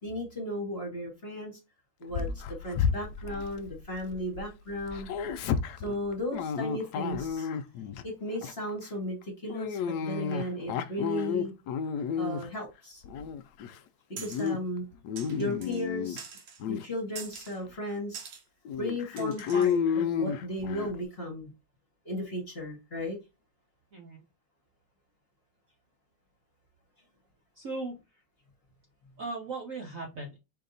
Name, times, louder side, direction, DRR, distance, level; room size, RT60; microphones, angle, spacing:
voice 1, 0.0-1.6 2.0-5.1 5.8-7.5 8.0-11.5 12.2-13.0 14.2-14.8 15.4-16.3 16.6-18.2 18.8-21.5 22.0-23.2, left 1 dB, 35° left, 1 dB, 1.2 m, -35 dB
Dog, 2.1-4.4 4.7-8.0 8.4-8.7 9.5-12.6 13.0-13.8 14.1-14.6 14.9-16.2 16.6-16.8 17.5-17.6 17.9-18.0 18.7-20.9, left 7 dB, 80° left, 0.9 m, -31 dB
sound 1, 14.2-14.5 15.2-15.9 16.2-16.6 17.2-17.6 18.1-18.4 19.2-19.8, right 6 dB, 85° right, 1.8 m, -44 dB
voice 2, 23.9-24.2 27.5-28.2 29.2-30.4, right 3 dB, 55° right, 0 dB, 1.0 m, -38 dB
4.6 x 2.8 x 3.8 m, 0.25 s
omnidirectional pair, 2.2 m